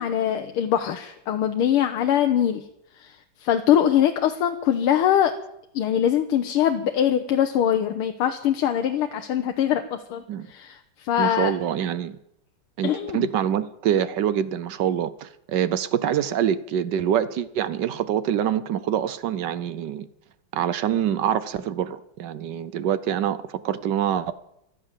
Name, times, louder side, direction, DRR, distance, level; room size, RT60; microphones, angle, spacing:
voice 1, 0.0-2.6 2.9-5.3 5.8-11.5 12.8-13.3, left 10 dB, 85° left, 1.8 m, -23 dB
voice 2, 11.2-12.2 12.8-20.1 20.5-24.3, right 9 dB, 65° right, 1.2 m, -25 dB
15.0 x 12.5 x 7.3 m
omnidirectional pair, 2.4 m